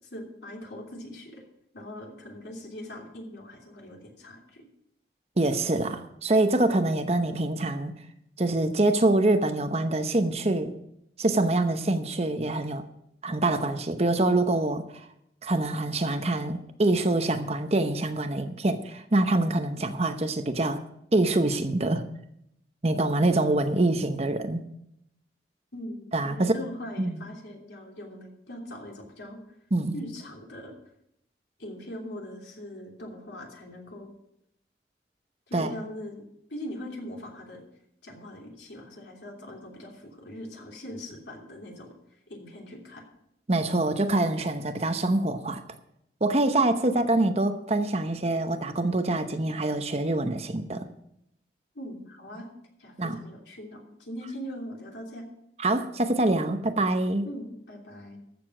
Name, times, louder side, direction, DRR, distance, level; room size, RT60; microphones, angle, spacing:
voice 1, 0.1-1.4 1.7-4.6 25.7-29.4 29.9-30.8 31.6-34.1 35.5-36.2 36.5-37.6 38.0-41.9 42.3-43.0 46.8-47.1 51.7-52.5 52.8-55.2 57.2-58.2, left 1 dB, 80° left, 0 dB, 3.1 m, -41 dB
voice 2, 5.4-7.9 8.4-10.7 11.2-12.8 13.2-15.1 15.4-20.8 21.1-22.0 22.8-24.7 26.1-26.5 27.0-27.2 29.7-29.9 35.5-35.7 43.5-45.6 46.2-50.9 53.0-53.2 55.6-57.3, right 2 dB, 35° right, 8 dB, 0.8 m, -25 dB
14.0 x 6.8 x 6.1 m, 0.77 s
head